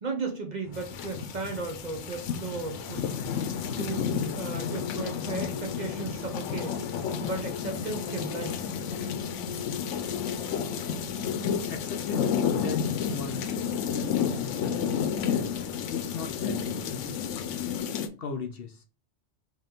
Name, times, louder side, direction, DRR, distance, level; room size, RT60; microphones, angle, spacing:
voice 1, 0.0-3.5 3.8-6.8 7.2-8.7, right 3 dB, 40° right, 0.8 m, -36 dB
sound 1, 0.6-17.8, equal, 40° left, 1.8 m, -49 dB
sound 2, 0.7-18.1, left 7 dB, 85° left, 0.9 m, -31 dB
sound 3, 4.0-10.3, left 8 dB, 75° right, 1.9 m, -43 dB
voice 2, 11.7-13.5 13.9-15.5 15.9-17.3 18.2-18.8, left 5 dB, 60° left, 0.8 m, -38 dB
4.7 x 3.1 x 3.6 m
omnidirectional pair, 1.2 m